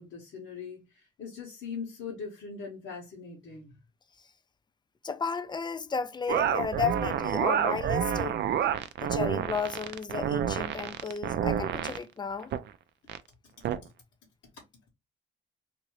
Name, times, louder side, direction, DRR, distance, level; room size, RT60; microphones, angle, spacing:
voice 1, 0.0-3.7, left 5 dB, 70° left, 1.3 m, -41 dB
voice 2, 5.0-8.4 9.0-12.5, left 5 dB, 20° left, 0.4 m, -33 dB
sound 1, 6.3-12.0 12.4-12.6 13.1-13.2 13.6-13.8, right 9 dB, 60° right, 0.4 m, -28 dB
2.9 x 2.7 x 3.0 m
cardioid pair, 90°, 20 cm